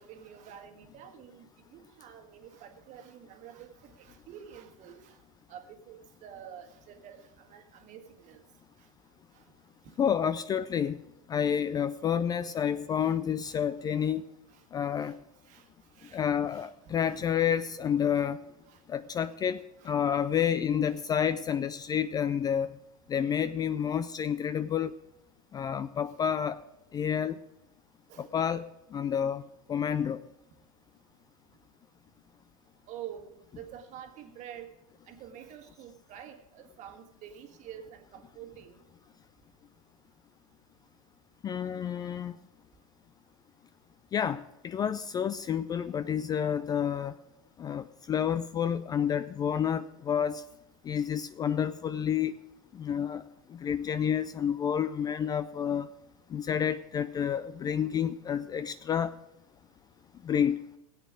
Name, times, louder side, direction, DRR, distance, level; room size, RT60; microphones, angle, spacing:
voice 1, 0.0-1.4 1.7-5.2 5.5-8.4 9.3-9.4 12.5-12.7 13.0-13.1 13.5-13.6 14.0-14.1 14.5-14.6 15.0-15.1 15.5-15.7 15.9-17.2 18.1-18.2 18.7-18.8 19.2-19.4 19.8-19.9 28.1-28.3 32.9-34.7 35.1-38.8, right 9 dB, 40° right, 6 dB, 1.6 m, -48 dB
voice 2, 10.0-11.0 11.3-14.2 14.7-15.2 16.1-18.4 18.9-22.8 23.1-24.9 25.5-26.6 26.9-27.4 28.2-29.4 29.7-30.2 41.4-42.4 44.1-47.1 47.6-50.4 50.8-52.3 52.7-53.2 53.5-55.9 56.3-59.2 60.2-60.6, left 8 dB, 20° left, 14 dB, 0.4 m, -29 dB
16.5 x 8.3 x 4.8 m, 0.91 s
hypercardioid pair, 105°, 19 cm